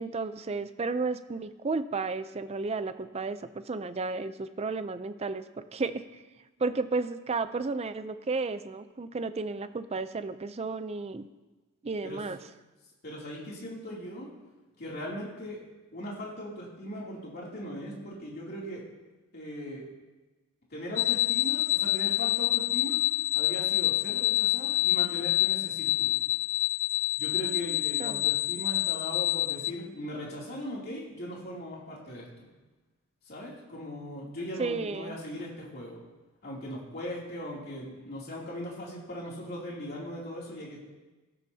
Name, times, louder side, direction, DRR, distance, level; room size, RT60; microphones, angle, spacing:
voice 1, 0.0-5.4 5.7-6.1 6.6-11.3 11.8-12.4 28.0-28.3 34.6-35.2, right 3 dB, 30° right, 11 dB, 0.5 m, -33 dB
voice 2, 13.0-14.3 14.8-15.6 15.9-18.8 19.3-19.8 20.7-23.0 23.3-26.1 27.2-32.5 33.3-36.0 36.4-40.8, equal, 45° left, -4 dB, 2.8 m, -39 dB
sound 1, 21.0-29.7, left 14 dB, 60° left, 0.3 m, -27 dB
17.0 x 12.5 x 2.8 m, 1.2 s
head